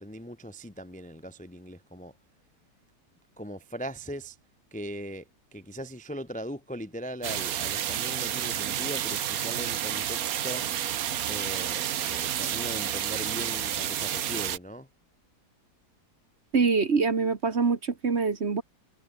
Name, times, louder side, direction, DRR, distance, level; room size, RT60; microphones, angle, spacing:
voice 1, 0.0-2.1 3.4-4.4 4.7-5.2 5.5-10.7 11.3-14.9, equal, 5° left, 0.9 m, -39 dB
sound 1, 7.2-14.6, right 10 dB, 60° right, 1.3 m, -30 dB
voice 2, 16.5-18.6, right 4 dB, 40° right, 1.6 m, -24 dB
omnidirectional pair, 1.9 m